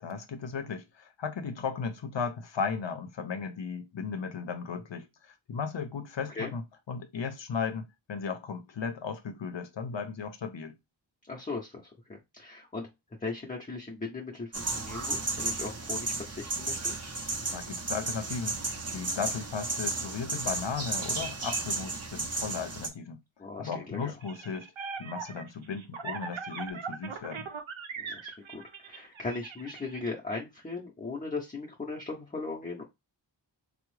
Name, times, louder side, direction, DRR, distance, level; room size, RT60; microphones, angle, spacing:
voice 1, 0.0-6.6 6.9-10.8 17.5-23.2 23.6-24.7 25.0-27.5, left 5 dB, 70° left, 0.6 m, -36 dB
voice 2, 11.3-12.9 13.2-17.0 23.4-24.1 28.0-32.8, left 3 dB, 20° left, 0.6 m, -38 dB
sound 1, 14.5-22.9, right 3 dB, 35° right, 0.6 m, -33 dB
sound 2, 24.2-30.0, right 5 dB, 90° right, 0.6 m, -40 dB
3.5 x 2.0 x 3.1 m
wide cardioid pair, 55°, 46 cm